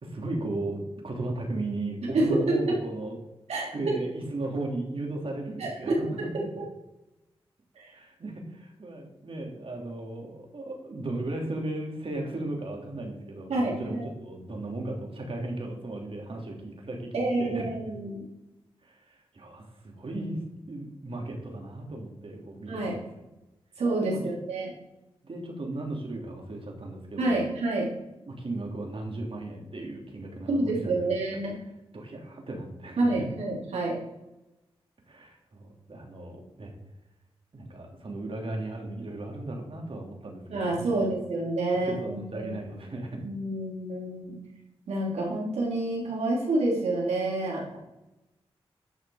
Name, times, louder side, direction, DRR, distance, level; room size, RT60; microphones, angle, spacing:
voice 1, 0.0-3.2 3.7-6.5 7.9-17.6 18.8-20.4 20.7-23.0 24.0-24.2 25.2-27.4 28.2-31.4 31.9-33.3 35.1-36.7 37.5-41.0 41.9-43.2, right 2 dB, 55° right, 1 dB, 3.0 m, -36 dB
voice 2, 2.1-2.6 3.5-3.9 5.6-6.0 6.3-6.4 7.8-7.9 13.5-14.0 17.1-18.2 22.7-23.0 23.8-24.7 27.2-27.9 30.5-31.6 33.0-34.0 40.5-42.6 43.2-44.3 44.9-47.8, right 2 dB, 80° right, -3 dB, 3.8 m, -28 dB
11.0 x 6.2 x 5.0 m, 0.96 s
cardioid pair, 45°, 11 cm